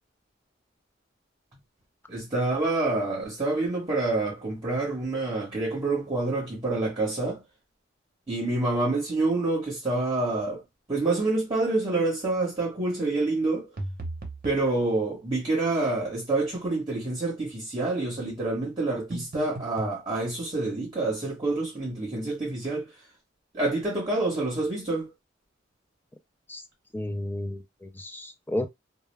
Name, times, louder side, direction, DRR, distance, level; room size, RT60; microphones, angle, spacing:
voice 1, 2.1-7.4 8.3-10.6 10.9-13.7 14.4-22.9 23.5-25.1, right 2 dB, 25° right, 1.0 m, -27 dB
sound 1, 13.8-14.7 19.1-20.0, right 1 dB, 50° right, 0.7 m, -36 dB
voice 2, 26.9-28.7, left 1 dB, 10° left, 0.3 m, -32 dB
2.2 x 2.0 x 3.2 m
head